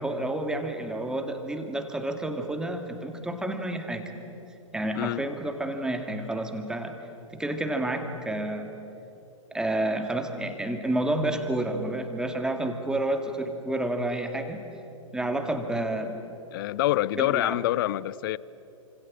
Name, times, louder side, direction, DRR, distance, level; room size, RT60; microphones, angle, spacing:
voice 1, 0.0-4.1 4.7-7.0 7.3-8.8 9.5-14.6 15.1-16.1 17.2-17.6, right 1 dB, 5° right, 2.2 m, -30 dB
voice 2, 16.5-18.4, left 15 dB, 40° left, 0.6 m, -26 dB
29.0 x 26.5 x 7.6 m
figure-of-eight pair, 110°, 17 cm